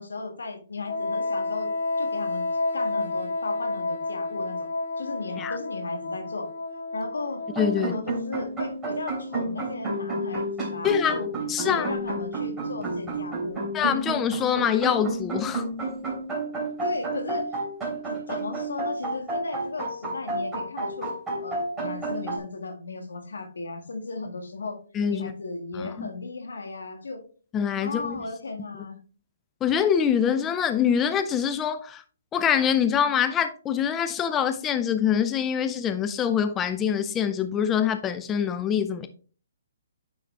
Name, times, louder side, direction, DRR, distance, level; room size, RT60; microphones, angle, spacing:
voice 1, 0.0-1.7 2.0-2.5 2.7-6.4 6.9-7.4 7.8-11.3 11.6-13.7 16.8-17.5 18.1-21.1 21.4-24.8 25.1-27.2 27.8-29.0, left 3 dB, 90° left, 1.8 m, -35 dB
Wind instrument woodwind instrument, 0.8-8.2, left 2 dB, 70° left, 1.2 m, -30 dB
sound 1, 7.5-22.4, right 2 dB, 10° right, 3.3 m, -31 dB
voice 2, 7.6-7.9 10.8-11.2 11.5-11.9 13.7-15.7 24.9-25.3 25.8-26.1 27.5-28.2 29.6-32.0 32.3-39.1, left 8 dB, 15° left, 0.5 m, -24 dB
9.8 x 3.9 x 3.3 m
hypercardioid pair, 150°, 0 cm